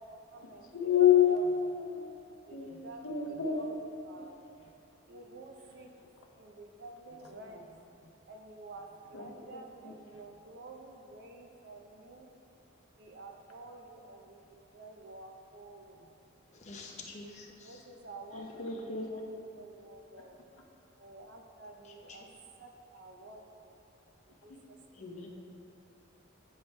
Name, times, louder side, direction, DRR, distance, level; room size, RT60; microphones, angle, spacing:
voice 1, 0.0-1.5 2.5-3.0 3.5-4.4 5.1-5.9 6.4-7.7 8.3-12.3 13.0-14.4 14.7-16.0 17.6-18.4 18.7-19.2 19.5-20.4 21.0-22.3 22.6-23.7 24.4-25.3, right 2 dB, 55° right, 3 dB, 0.6 m, -50 dB
voice 2, 0.7-2.2 2.5-3.7 4.2-4.3 9.1-9.3 9.8-9.9 18.3-19.1 24.5-24.6, left 9 dB, 80° left, 1 dB, 0.7 m, -28 dB
voice 3, 16.5-17.8 18.7-18.8 21.8-22.2 24.9-25.3, left 3 dB, 35° left, -1 dB, 0.8 m, -48 dB
9.4 x 4.5 x 3.2 m, 2.7 s
head